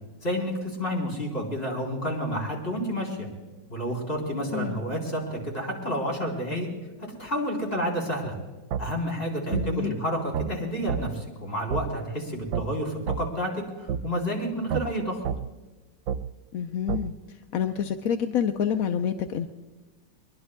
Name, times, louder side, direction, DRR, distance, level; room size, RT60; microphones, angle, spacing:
voice 1, 0.2-3.3 3.7-6.7 7.0-8.4 8.8-15.2, equal, 30° left, -1 dB, 3.9 m, -30 dB
sound 1, 8.7-8.8 9.5-9.7 10.3-10.5 10.9-11.0 11.7-11.8 12.5-12.7 13.1-13.2 13.9-14.0 14.7-14.8 15.2-15.4 16.1-16.2 16.9-17.0, right 8 dB, 85° right, 1.4 m, -28 dB
voice 2, 9.5-10.0 16.5-17.1 17.5-19.5, left 8 dB, 65° left, 6 dB, 0.9 m, -27 dB
22.5 x 22.5 x 2.2 m, 1.2 s
omnidirectional pair, 2.1 m